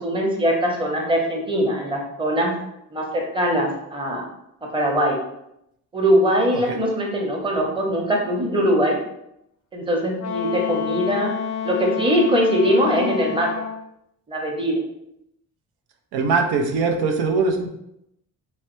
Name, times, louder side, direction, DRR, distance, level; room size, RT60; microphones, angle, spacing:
voice 1, 0.0-2.5 2.9-4.2 4.7-5.2 5.9-9.0 9.7-11.3 11.6-13.5 14.3-14.8, equal, 15° right, -1 dB, 0.8 m, -21 dB
Wind instrument woodwind instrument, 10.2-13.9, left 8 dB, 45° left, 0.4 m, -29 dB
voice 2, 16.1-17.7, right 4 dB, 90° right, 2 dB, 0.6 m, -21 dB
3.1 x 3.1 x 3.1 m, 0.80 s
cardioid pair, 115°, 36 cm